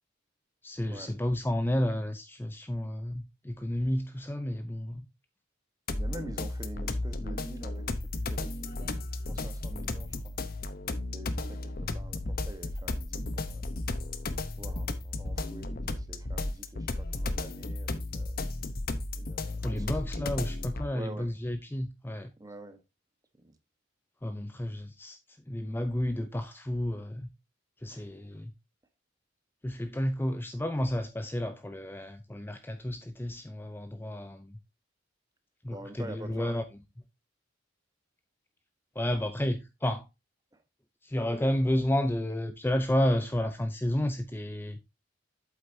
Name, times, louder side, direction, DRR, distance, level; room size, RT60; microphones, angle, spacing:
voice 1, 0.6-5.1 19.6-22.3 24.2-25.2 25.5-27.3 27.8-28.5 29.6-34.6 35.6-36.6 39.0-40.0 41.0-44.8, left 1 dB, 10° left, 0.5 m, -31 dB
sound 1, 5.9-20.9, left 2 dB, 50° left, 0.8 m, -34 dB
voice 2, 5.9-7.9 8.3-8.5 8.8-8.9 9.3-10.3 11.1-13.6 14.6-18.4 19.1-20.2 20.9-21.3 22.4-22.8 23.4-23.5 27.9-28.0 35.7-36.6 39.4-39.5, right 1 dB, 20° right, 1.2 m, -46 dB
8.1 x 8.0 x 2.7 m
head